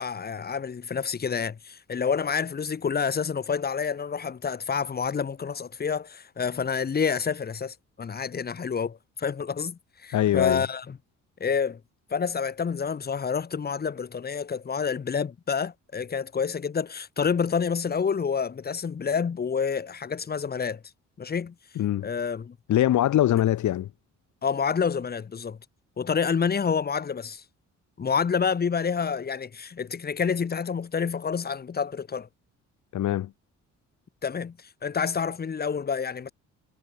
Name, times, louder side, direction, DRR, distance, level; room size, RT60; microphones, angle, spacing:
voice 1, 0.0-11.0 11.4-11.8 12.1-20.8 21.2-21.5 22.0-22.6 24.4-25.6 26.0-27.4 28.0-32.3 34.2-34.6 34.8-36.3, left 6 dB, 30° left, 1.1 m, -28 dB
voice 2, 10.1-10.6 21.8-22.1 22.7-23.9 32.9-33.3, left 12 dB, 75° left, 2.4 m, -23 dB
cardioid pair, 90°, 30 cm